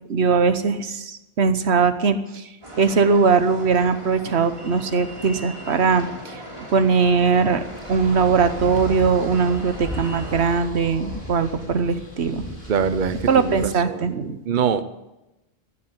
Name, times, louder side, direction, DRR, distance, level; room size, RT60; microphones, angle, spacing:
voice 1, 0.1-2.5 2.8-6.4 6.7-7.6 7.9-12.6 13.3-14.4, right 5 dB, 85° right, 1.3 m, -20 dB
sound 1, 2.6-10.6, equal, 30° right, 3.1 m, -38 dB
sound 2, 7.3-13.7, left 1 dB, 35° left, 5.3 m, -36 dB
voice 2, 12.7-14.1 14.5-14.8, right 6 dB, 50° right, 0.9 m, -23 dB
15.5 x 8.4 x 9.6 m
omnidirectional pair, 1.1 m